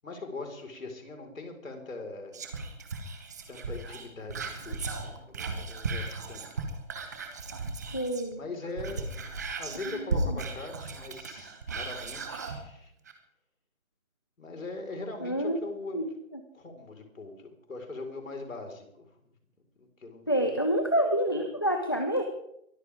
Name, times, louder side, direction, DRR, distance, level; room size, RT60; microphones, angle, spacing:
voice 1, 0.0-2.4 3.5-6.5 8.3-9.1 9.6-12.9 14.4-16.0 16.5-19.1 19.8-20.6, left 3 dB, 75° left, 4 dB, 4.7 m, -41 dB
Whispering, 2.3-8.3 8.7-12.6 13.1-13.2, right 3 dB, 15° right, 0.9 m, -36 dB
voice 2, 7.9-8.4 9.9-10.0 10.3-10.4 15.2-15.6 15.9-16.1 20.3-22.2, equal, 20° left, 5 dB, 0.6 m, -27 dB
23.0 x 13.5 x 3.6 m, 0.77 s
hypercardioid pair, 165°, 40 cm